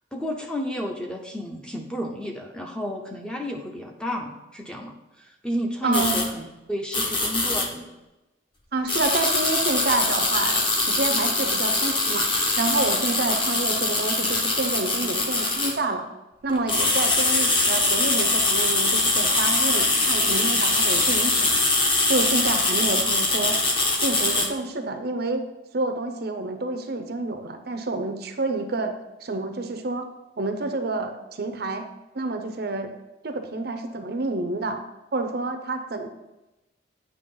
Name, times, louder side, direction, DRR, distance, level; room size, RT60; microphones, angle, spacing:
voice 1, 0.1-7.9, equal, 5° left, 1 dB, 0.6 m, -32 dB
voice 2, 5.8-6.2 8.7-12.3 12.6-16.1 16.4-21.6 22.1-23.6 24.0-25.5 25.7-28.9 29.2-30.0 30.4-31.9 32.1-32.9 33.2-34.8 35.1-36.1, right 2 dB, 55° right, 6 dB, 0.6 m, -28 dB
sound 1, 5.9-6.3 6.9-7.7 8.9-15.7 16.5-24.5, left 2 dB, 25° left, 0.9 m, -23 dB
8.5 x 3.0 x 5.4 m, 1.0 s
head